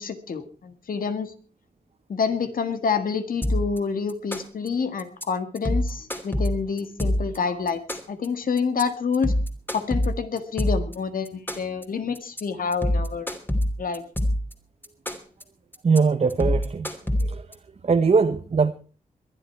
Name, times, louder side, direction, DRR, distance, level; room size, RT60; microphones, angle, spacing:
voice 1, 0.0-1.3 2.1-9.3 9.7-13.3 13.8-14.0, left 5 dB, 75° left, 1.9 m, -28 dB
sound 1, 3.4-3.8 4.1-4.7 5.0-5.2 5.6-7.4 7.7-8.3 8.6-8.8 9.1-10.9 11.3-11.8 12.1-12.4 12.7-14.5 14.8-15.4 15.7-16.0 16.3-17.5, left 1 dB, 15° left, 2.9 m, -25 dB
voice 2, 15.8-16.9 17.2-17.5 17.8-18.7, right 5 dB, 45° right, 1.0 m, -21 dB
22.0 x 11.5 x 4.6 m
wide cardioid pair, 85°, 15 cm